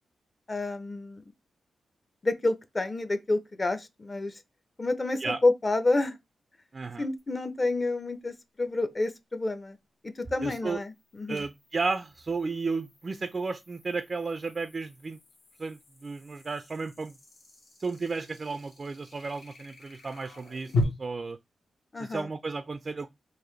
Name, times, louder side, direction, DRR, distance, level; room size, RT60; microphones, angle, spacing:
voice 1, 0.5-1.2 2.2-4.4 4.8-6.2 7.0-9.8 10.2-11.4 21.9-22.3, left 2 dB, 35° left, 0.6 m, -29 dB
voice 2, 6.7-7.1 10.4-10.8 11.3-15.2 15.6-17.2 17.8-21.4 22.0-23.1, right 4 dB, 45° right, 0.3 m, -33 dB
sound 1, 7.2-7.3 10.7-20.8, left 2 dB, 75° left, 1.4 m, -39 dB
3.9 x 2.6 x 3.2 m
cardioid pair, 70°, 0 cm